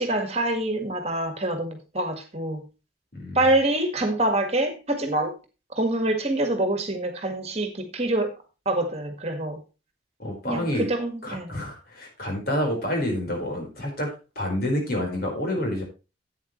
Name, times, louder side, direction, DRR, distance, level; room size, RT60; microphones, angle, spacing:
voice 1, 0.0-2.6 3.3-5.3 5.7-8.3 8.6-9.6 10.4-11.5, right 1 dB, 35° right, 5 dB, 1.9 m, -25 dB
voice 2, 3.1-3.4 10.2-10.9 11.2-15.8, left 1 dB, 50° left, 1 dB, 4.7 m, -28 dB
12.0 x 8.8 x 3.2 m, 0.30 s
head